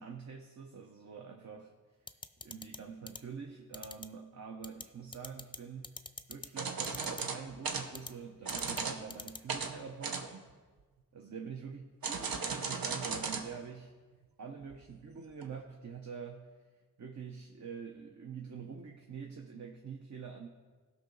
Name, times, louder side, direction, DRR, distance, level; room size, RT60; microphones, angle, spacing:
voice 1, 0.0-1.8 2.4-6.0 6.3-10.5 11.1-13.9 14.4-16.5 17.0-20.5, right 6 dB, 55° right, 2 dB, 0.8 m, -46 dB
sound 1, 2.1-2.8 3.1-3.2 3.7-4.1 4.6-4.8 5.1-5.6 5.8-6.5 6.8-7.2 7.9-8.1 8.5-8.8 9.1-9.4, left 3 dB, 15° left, 0.4 m, -43 dB
sound 2, 6.6-7.9 8.5-9.0 9.5-9.7 10.0-10.5 12.0-13.5 13.7-13.8 14.7-14.8 15.4-15.5, right 5 dB, 85° right, 0.9 m, -36 dB
16.5 x 5.7 x 3.9 m, 1.4 s
wide cardioid pair, 75°, 34 cm